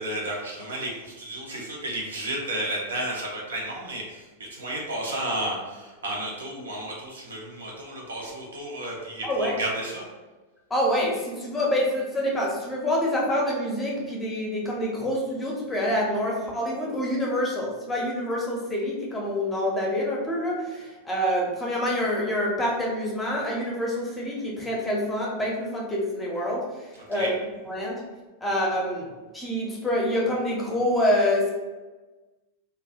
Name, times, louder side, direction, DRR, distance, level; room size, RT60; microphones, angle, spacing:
voice 1, 0.0-10.0 26.9-27.3, right 1 dB, 70° right, -2 dB, 0.6 m, -32 dB
voice 2, 9.2-9.6 10.7-27.3 27.7-28.0 28.4-31.5, left 1 dB, 10° left, -3 dB, 0.6 m, -26 dB
2.2 x 2.1 x 2.8 m, 1.2 s
figure-of-eight pair, 90°, 0 cm